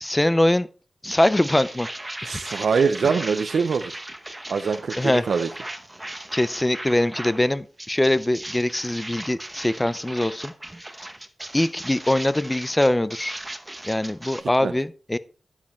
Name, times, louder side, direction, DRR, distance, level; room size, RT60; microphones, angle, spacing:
voice 1, 0.0-0.7 1.0-1.9 2.2-2.4 3.0-3.1 5.0-5.3 6.3-10.5 11.5-13.4 13.8-15.2, left 1 dB, 15° left, 0.5 m, -22 dB
sound 1, 1.1-7.4 7.8-14.4, right 1 dB, 15° right, 1.0 m, -37 dB
voice 2, 2.3-3.9 4.5-5.5 14.6-14.7, right 5 dB, 85° right, 0.6 m, -23 dB
10.5 x 7.4 x 4.3 m
wide cardioid pair, 125°, 0 cm